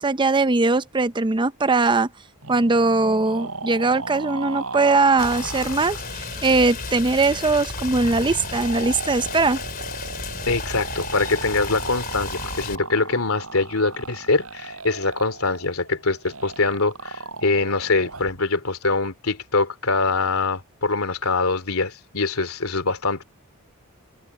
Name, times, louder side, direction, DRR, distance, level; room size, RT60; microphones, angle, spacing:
voice 1, 0.0-2.1 2.5-9.6, right 3 dB, 20° right, 0.6 m, -20 dB
sound 1, 2.4-18.4, right 3 dB, 75° right, 5.7 m, -36 dB
Rain, 5.2-12.8, left 4 dB, 45° left, 3.3 m, -33 dB
voice 2, 10.5-23.2, left 3 dB, 80° left, 2.9 m, -23 dB
open air
head